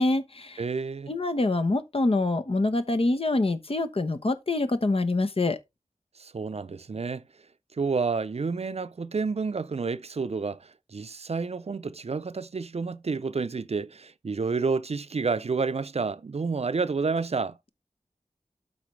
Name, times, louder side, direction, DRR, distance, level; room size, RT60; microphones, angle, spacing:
voice 1, 0.0-0.6 1.1-5.6, left 2 dB, 55° left, 1.0 m, -25 dB
voice 2, 0.6-1.1 6.2-7.2 7.8-17.6, right 4 dB, 60° right, 0.6 m, -29 dB
12.5 x 4.2 x 3.2 m
wide cardioid pair, 45°, 12 cm